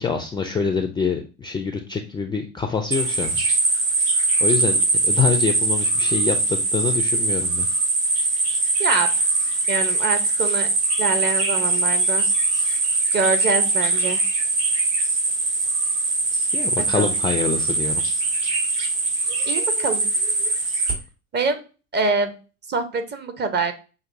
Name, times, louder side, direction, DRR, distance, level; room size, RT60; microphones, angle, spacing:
voice 1, 0.0-3.3 4.4-4.8 5.0-7.7 16.3-18.0, left 5 dB, 10° left, 5 dB, 0.4 m, -25 dB
sound 1, 2.9-20.9, right 2 dB, 65° right, 1.8 m, -22 dB
voice 2, 8.8-9.1 9.7-10.7 11.0-12.3 13.1-14.2 16.8-17.1 19.5-20.1 21.3-21.6 21.9-22.4 22.7-23.7, right 4 dB, 25° right, 8 dB, 0.7 m, -24 dB
6.0 x 2.5 x 2.5 m, 0.33 s
hypercardioid pair, 75°, 39 cm